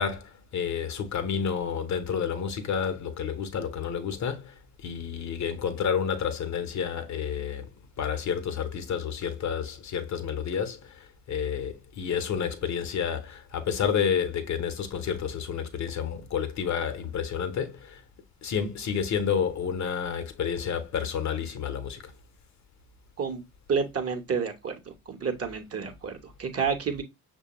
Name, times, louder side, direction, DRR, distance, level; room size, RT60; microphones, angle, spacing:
voice 1, 0.0-4.5 4.8-7.7 8.0-18.0 18.4-22.1, left 7 dB, 40° left, 0.9 m, -30 dB
voice 2, 23.7-24.8 25.1-27.0, right 6 dB, 30° right, 1.0 m, -29 dB
6.4 x 2.2 x 2.9 m
figure-of-eight pair, 50°, 45 cm